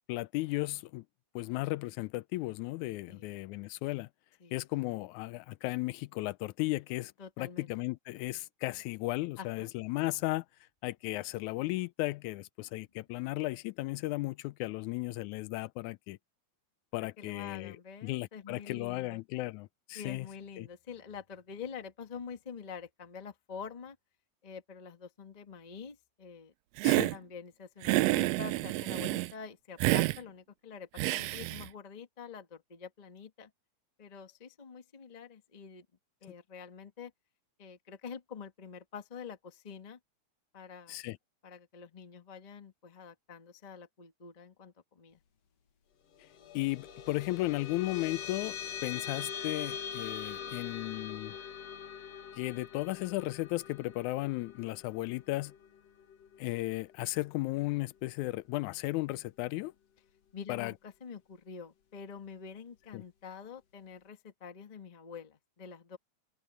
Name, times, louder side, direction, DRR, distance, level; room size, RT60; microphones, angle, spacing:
voice 1, 0.1-1.0 1.4-4.1 4.5-7.1 7.4-10.4 10.8-16.2 16.9-17.8 18.0-20.3 20.6-20.7 26.8-27.1 40.9-41.2 46.5-48.6 48.8-51.4 52.4-55.5 56.4-59.7 60.5-60.7 62.9-63.0, left 19 dB, 85° left, 2.0 m, -35 dB
voice 2, 7.2-7.7 9.4-9.7 17.0-19.2 19.9-24.0 24.4-26.5 27.1-33.5 34.0-35.8 36.2-37.1 37.6-40.0 40.5-41.0 41.4-45.2 60.3-66.0, left 6 dB, 30° left, 0.7 m, -46 dB
Hiss, 26.8-27.2 27.8-29.3 29.8-30.2 31.0-31.7, right 19 dB, 80° right, 1.6 m, -28 dB
sound 1, 46.1-56.9, left 7 dB, 65° left, 2.6 m, -43 dB
omnidirectional pair, 3.3 m